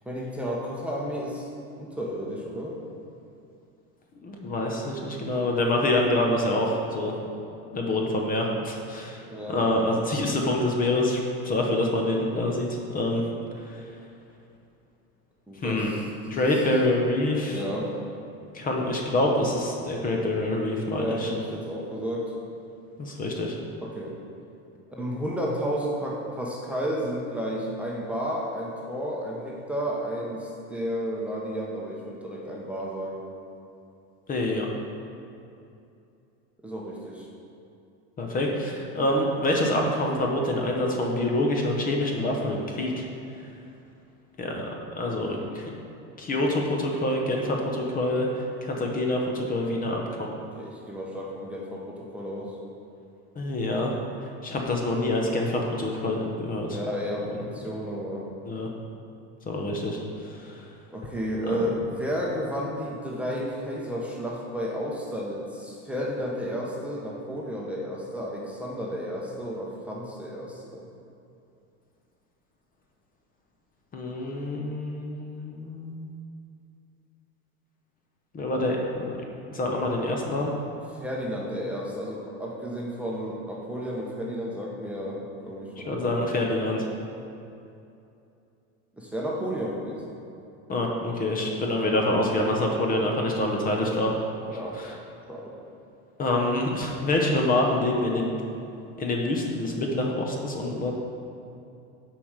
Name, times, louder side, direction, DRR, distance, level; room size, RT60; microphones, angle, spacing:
voice 1, 0.0-1.5 1.8-2.8 9.3-9.6 15.5-16.6 17.5-17.9 20.8-22.3 23.8-24.1 24.9-33.2 36.6-37.3 50.5-52.6 56.7-58.2 60.9-70.8 80.9-86.6 89.0-90.1 94.5-94.8 95.3-95.6, equal, 5° right, -4 dB, 0.9 m, -32 dB
voice 2, 4.2-7.1 7.7-13.2 13.6-13.8 15.6-15.9 16.3-17.6 18.5-21.3 23.0-23.6 34.3-34.7 38.2-43.1 44.4-45.7 46.2-50.3 53.4-54.0 54.4-56.8 58.5-58.7 59.5-60.7 61.5-61.6 73.9-76.1 78.3-79.2 79.5-80.5 85.8-86.9 90.7-94.1 94.7-94.9 96.2-98.3 99.0-100.9, left 1 dB, 25° left, 0 dB, 0.9 m, -26 dB
6.9 x 4.8 x 6.6 m, 2.7 s
supercardioid pair, 135°, 32 cm